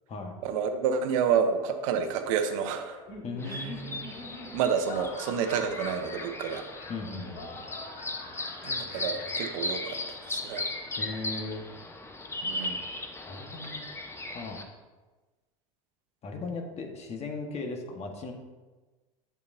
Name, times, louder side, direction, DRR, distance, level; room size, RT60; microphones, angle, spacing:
voice 1, 0.4-3.0 3.5-3.7 4.5-6.6 8.6-10.0 10.3-10.6 12.4-12.8, right 7 dB, 65° right, 8 dB, 0.9 m, -29 dB
Laughter, 2.9-10.4, left 2 dB, 60° left, 1.9 m, -44 dB
voice 2, 3.2-4.1 6.9-7.6 10.9-11.6 13.2-13.9 14.3-14.6 16.2-18.3, left 3 dB, 35° left, 3 dB, 1.4 m, -37 dB
sound 1, 3.4-14.6, left 2 dB, 15° left, 1.0 m, -37 dB
8.6 x 6.7 x 2.7 m, 1.2 s
hypercardioid pair, 85°, 18 cm